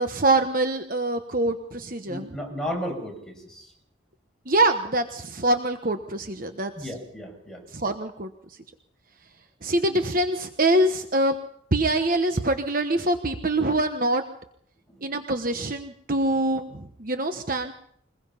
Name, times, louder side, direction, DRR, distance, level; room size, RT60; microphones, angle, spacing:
voice 1, 0.0-2.3 4.5-6.9 7.7-8.6 9.6-11.4 11.7-14.2 15.0-17.7, right 2 dB, 45° right, 7 dB, 1.1 m, -24 dB
voice 2, 2.0-3.7 6.7-7.6 14.9-15.1, equal, 5° left, 0 dB, 6.6 m, -34 dB
23.5 x 21.0 x 5.7 m, 0.68 s
head